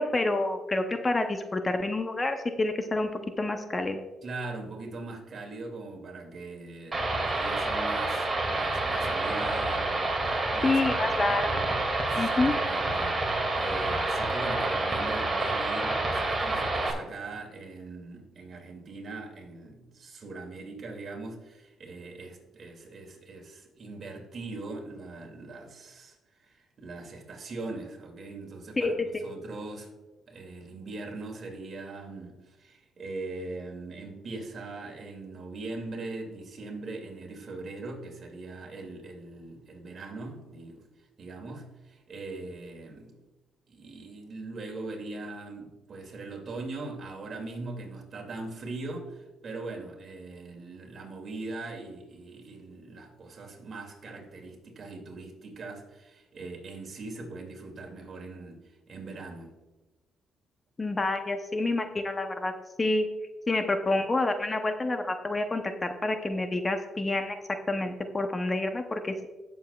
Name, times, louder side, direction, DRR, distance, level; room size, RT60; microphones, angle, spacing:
voice 1, 0.0-3.1 3.4-4.0 10.6-11.6 12.2-12.5 28.8-28.9 60.8-62.5 62.8-63.1 63.5-67.4 67.7-69.3, left 2 dB, 25° left, 0.8 m, -28 dB
voice 2, 4.2-11.7 12.0-29.9 30.3-40.8 41.2-43.2 43.7-58.6 58.9-59.5, right 3 dB, 50° right, 2.4 m, -41 dB
sound 1, 6.9-16.9, right 2 dB, 25° right, 2.3 m, -28 dB
16.0 x 7.1 x 2.4 m
cardioid pair, 90°, 0 cm